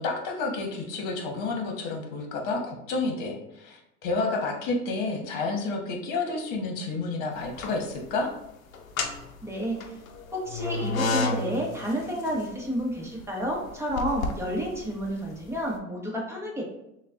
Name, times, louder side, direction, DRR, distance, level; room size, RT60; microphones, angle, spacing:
voice 1, 0.0-8.3, left 3 dB, 50° left, 2 dB, 1.2 m, -30 dB
sound 1, 7.4-8.1 8.7-15.6, left 3 dB, 90° left, 0.6 m, -32 dB
voice 2, 9.4-9.8 10.3-16.6, equal, 5° right, -2 dB, 1.1 m, -30 dB
6.4 x 2.4 x 2.4 m, 0.85 s
hypercardioid pair, 90°, 40 cm